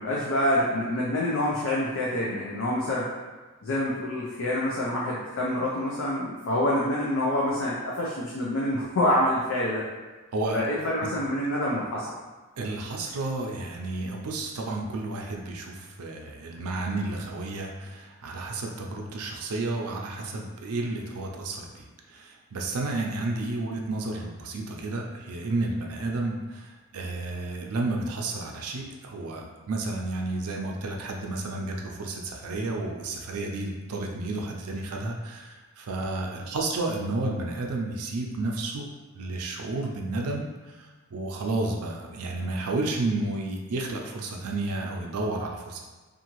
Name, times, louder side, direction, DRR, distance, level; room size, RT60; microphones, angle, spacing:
voice 1, 0.0-3.1 3.6-9.8 10.5-12.1, left 1 dB, 65° left, -5 dB, 0.5 m, -26 dB
voice 2, 10.3-10.7 11.0-11.1 12.6-38.9 39.1-40.5 40.8-45.8, right 2 dB, 85° right, 1 dB, 0.5 m, -31 dB
2.7 x 2.4 x 2.9 m, 1.3 s
head